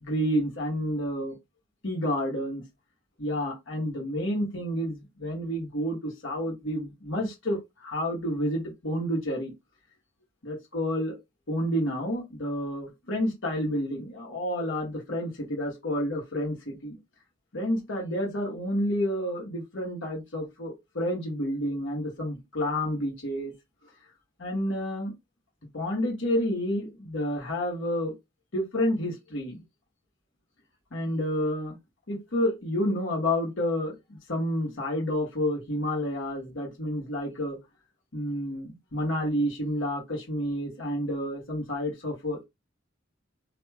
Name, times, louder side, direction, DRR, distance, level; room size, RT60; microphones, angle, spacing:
voice 1, 0.0-1.4 1.8-2.6 3.2-9.5 10.4-11.2 11.5-17.0 17.5-23.5 24.4-25.1 25.7-28.1 28.5-29.6 30.9-31.8 32.1-37.6 38.1-42.4, equal, 75° left, 1.3 m, -29 dB
3.0 x 2.7 x 2.3 m
head